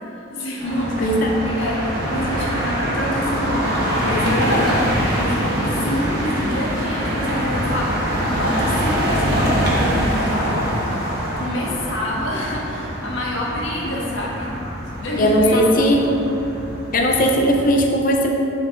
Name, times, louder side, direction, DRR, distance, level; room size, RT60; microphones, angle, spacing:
voice 1, 0.0-1.1 1.4-4.8 5.1-10.8 11.4-14.6 14.9-16.4, left 1 dB, 70° left, -4 dB, 1.5 m, -27 dB
sound 1, 0.6-17.8, equal, 50° right, 1.4 m, -24 dB
voice 2, 1.0-1.4 15.2-16.1 16.9-18.3, equal, 45° left, 1 dB, 0.7 m, -17 dB
9.4 x 4.5 x 3.9 m, 2.9 s
head